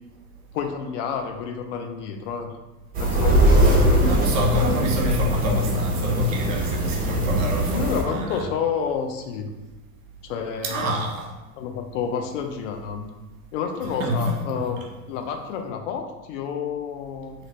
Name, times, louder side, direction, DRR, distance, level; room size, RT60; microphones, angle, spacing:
voice 1, 0.5-2.5 3.0-4.2 7.7-9.5 10.2-11.0 11.5-13.1 13.5-17.3, left 6 dB, 55° left, 5 dB, 0.5 m, -29 dB
sound 1, 2.9-8.0, right 1 dB, 20° right, 0.6 m, -21 dB
voice 2, 3.5-8.5 10.6-11.3 14.0-14.4, equal, 55° right, 0 dB, 0.9 m, -26 dB
2.8 x 2.6 x 3.0 m, 1.1 s
hypercardioid pair, 85°, 47 cm